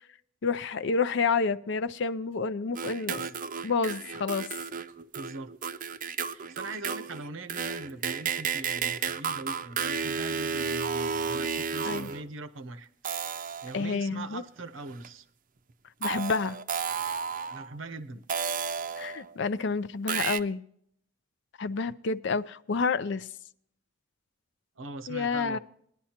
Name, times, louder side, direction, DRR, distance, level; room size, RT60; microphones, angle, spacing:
voice 1, 0.4-3.3 3.6-4.5 11.8-12.1 13.7-14.4 16.0-16.6 19.0-20.6 21.6-23.3 25.1-25.6, left 4 dB, 65° left, 12 dB, 0.5 m, -29 dB
sound 1, 2.7-12.3 13.0-13.9 15.0-15.1 16.0-17.7 18.3-19.3 20.1-20.4, right 6 dB, 45° right, 0.5 m, -32 dB
voice 2, 5.1-5.5 6.3-12.9 13.6-15.2 17.5-18.2 24.8-25.6, right 2 dB, 85° right, 11 dB, 0.7 m, -41 dB
20.5 x 11.0 x 2.9 m, 0.68 s
head